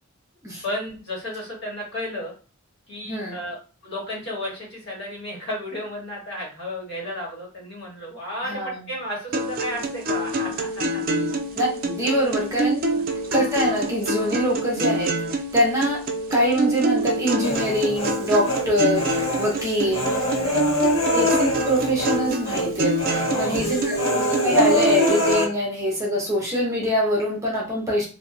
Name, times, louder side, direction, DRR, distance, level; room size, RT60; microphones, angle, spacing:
voice 1, 0.6-2.3 2.9-3.6 3.8-11.0 12.9-13.0 19.8-20.8 23.1-23.7, equal, 55° left, -4 dB, 1.3 m, -33 dB
voice 2, 3.1-3.4 8.4-8.8 11.5-12.8 13.3-15.1 15.5-16.0 16.3-20.3 21.1-28.0, equal, 15° right, -4 dB, 0.7 m, -24 dB
sound 1, 9.3-25.3, right 1 dB, 40° right, 0.3 m, -26 dB
Human voice, 17.4-18.6 19.0-22.2 22.4-22.7 23.0-25.4, left 1 dB, 90° left, 1.1 m, -24 dB
2.7 x 2.2 x 2.4 m, 0.35 s
head